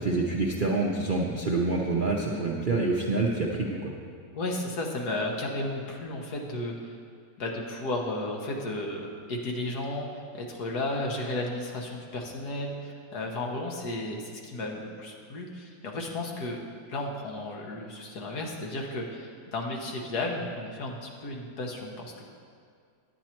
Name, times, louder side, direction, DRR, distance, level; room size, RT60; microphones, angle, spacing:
voice 1, 0.0-3.9, right 3 dB, 45° right, -3 dB, 0.6 m, -27 dB
voice 2, 4.3-6.9 7.4-10.1 10.3-16.6 16.9-22.2, left 2 dB, 65° left, 0 dB, 1.7 m, -33 dB
10.0 x 9.5 x 4.4 m, 2.2 s
omnidirectional pair, 1.8 m